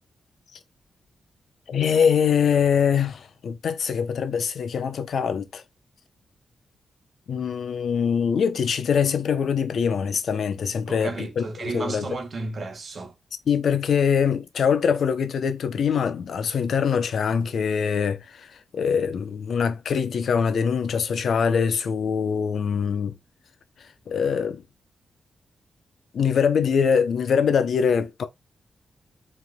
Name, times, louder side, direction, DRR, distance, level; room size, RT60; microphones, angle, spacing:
voice 1, 1.7-5.6 7.3-12.1 13.5-23.1 24.1-24.6 26.1-28.2, left 7 dB, 75° left, 0.7 m, -23 dB
voice 2, 10.9-13.1, right 3 dB, 60° right, 1.1 m, -33 dB
4.9 x 3.6 x 2.2 m
cardioid pair, 60°, 0 cm